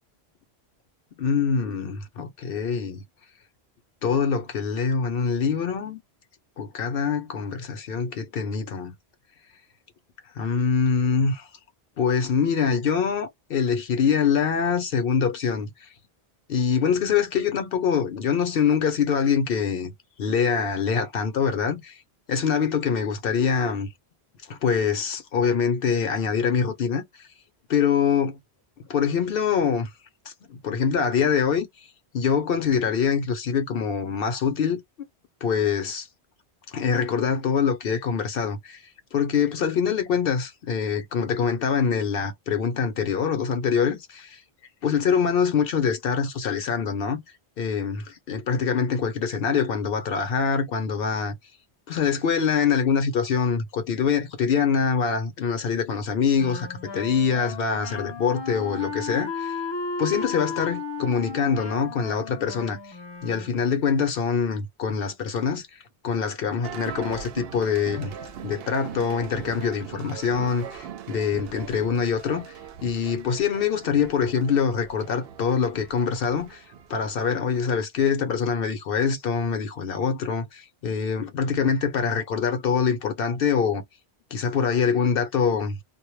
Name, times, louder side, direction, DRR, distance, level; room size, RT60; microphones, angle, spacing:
voice 1, 1.2-3.0 4.0-6.0 6.6-8.9 10.4-11.5 12.0-15.7 16.5-19.9 20.2-22.0 22.3-23.9 24.5-27.3 27.7-28.4 28.9-29.9 30.5-31.7 32.1-34.8 35.4-36.1 36.7-38.8 39.1-44.4 44.8-47.2 47.6-51.3 51.9-59.6 60.0-62.8 63.2-65.7 66.0-68.1 68.4-72.5 72.8-76.6 76.9-83.8 84.3-85.8, left 6 dB, 65° left, 0.8 m, -24 dB
Wind instrument woodwind instrument, 56.4-63.7, left 4 dB, 30° left, 0.6 m, -34 dB
sound 1, 66.6-77.3, right 8 dB, 70° right, 0.7 m, -41 dB
2.1 x 2.0 x 3.0 m
omnidirectional pair, 1.1 m